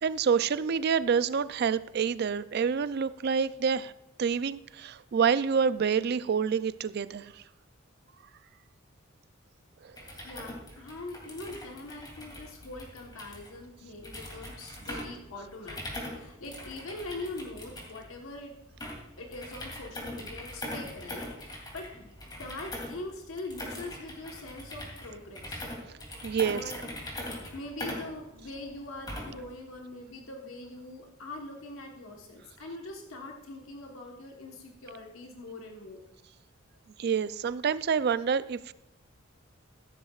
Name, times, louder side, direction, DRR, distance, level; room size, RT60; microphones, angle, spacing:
voice 1, 0.0-3.9 4.2-7.3 26.2-26.6 37.0-38.7, right 6 dB, 50° right, 16 dB, 0.3 m, -27 dB
sound 1, 9.9-29.5, left 1 dB, 20° left, 2.8 m, -42 dB
voice 2, 10.2-18.5 19.2-21.9 22.4-25.7 26.4-26.7 27.0-36.0, left 2 dB, 80° left, 1 dB, 1.2 m, -43 dB
15.0 x 13.0 x 2.4 m, 0.92 s
head